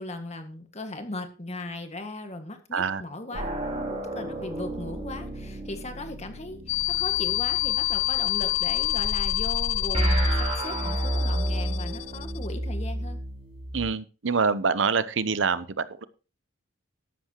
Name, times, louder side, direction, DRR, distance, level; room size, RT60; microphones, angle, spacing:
voice 1, 0.0-3.5 3.8-13.2, left 2 dB, 35° left, 6 dB, 1.8 m, -38 dB
voice 2, 2.7-3.0 13.7-16.0, right 5 dB, 70° right, 15 dB, 0.8 m, -26 dB
sound 1, 3.3-8.7 9.9-13.9, right 1 dB, 30° right, 4.8 m, -31 dB
sound 2, 6.7-12.5, left 14 dB, 80° left, 0.6 m, -28 dB
13.0 x 11.5 x 3.0 m, 0.34 s
head